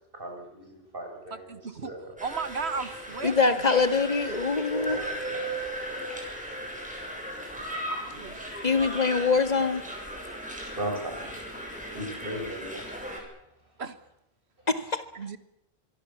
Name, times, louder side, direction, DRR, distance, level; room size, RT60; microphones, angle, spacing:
voice 1, 0.1-2.1 4.8-7.6 8.3-8.6 10.3-13.3 14.6-14.7, right 1 dB, 55° right, 2 dB, 7.1 m, -40 dB
voice 2, 1.5-1.9 2.2-3.9 8.2-8.4 13.8-14.0 15.2-15.4, right 5 dB, 75° right, 11 dB, 1.8 m, -35 dB
sound 1, 2.2-13.2, right 1 dB, 5° right, 7.7 m, -36 dB
voice 3, 3.2-5.0 8.6-9.8 14.7-15.0, left 4 dB, 40° left, 9 dB, 2.1 m, -24 dB
25.5 x 23.0 x 7.3 m, 0.78 s
omnidirectional pair, 1.1 m